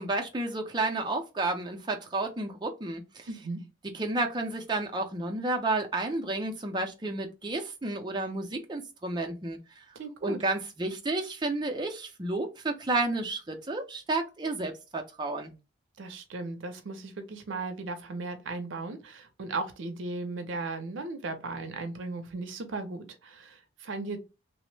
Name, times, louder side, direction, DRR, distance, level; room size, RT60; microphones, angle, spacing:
voice 1, 0.0-3.3 3.9-9.8 10.2-15.5, right 2 dB, 20° right, 0.5 m, -31 dB
voice 2, 3.3-3.6 10.0-10.4 16.0-24.2, right 3 dB, 80° right, 0.5 m, -36 dB
2.9 x 2.0 x 3.1 m
head